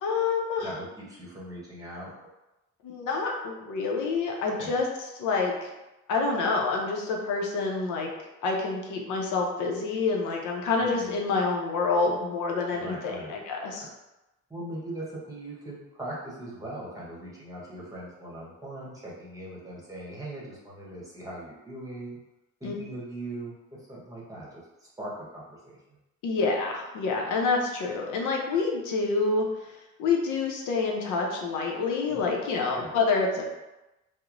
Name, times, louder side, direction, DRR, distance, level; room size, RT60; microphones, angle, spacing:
voice 1, 0.0-0.7 2.8-4.9 5.2-5.7 6.1-8.1 8.4-13.8 22.6-22.7 26.2-29.5 30.0-33.4, left 4 dB, 85° left, 0 dB, 0.5 m, -27 dB
voice 2, 0.6-2.1 4.4-4.8 10.8-11.2 12.7-13.3 13.7-13.9 14.5-22.2 22.6-23.5 23.9-26.0 32.1-32.2 32.7-32.9, right 1 dB, 10° right, -6 dB, 0.9 m, -40 dB
2.9 x 2.0 x 2.4 m, 0.98 s
cardioid pair, 90°, 30 cm